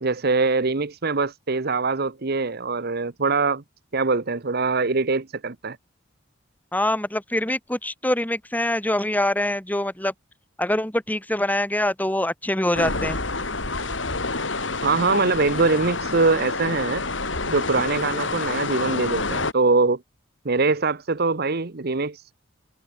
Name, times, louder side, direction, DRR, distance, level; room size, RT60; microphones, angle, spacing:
voice 1, 0.0-3.6 3.9-5.8 14.8-17.0 17.5-20.0 20.4-22.3, right 3 dB, 55° right, 1.1 m, -23 dB
voice 2, 6.7-10.1 10.6-13.2, left 1 dB, 10° left, 2.5 m, -24 dB
sound 1, 12.7-19.5, left 3 dB, 70° left, 5.8 m, -28 dB
head